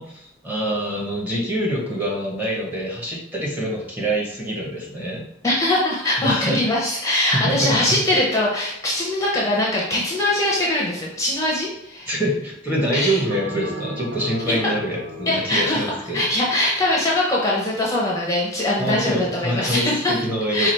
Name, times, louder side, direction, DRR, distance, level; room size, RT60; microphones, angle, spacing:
voice 1, 0.0-5.2 6.2-6.6 7.3-7.8 12.1-16.2 18.8-20.7, right 1 dB, 10° right, -3 dB, 1.0 m, -25 dB
voice 2, 5.4-12.2 12.9-13.2 14.5-14.6 15.3-20.2 20.5-20.7, left 1 dB, 15° left, -4 dB, 0.7 m, -22 dB
Bell, 13.3-17.9, right 1 dB, 75° right, 0.6 m, -37 dB
4.7 x 2.4 x 4.3 m, 0.77 s
head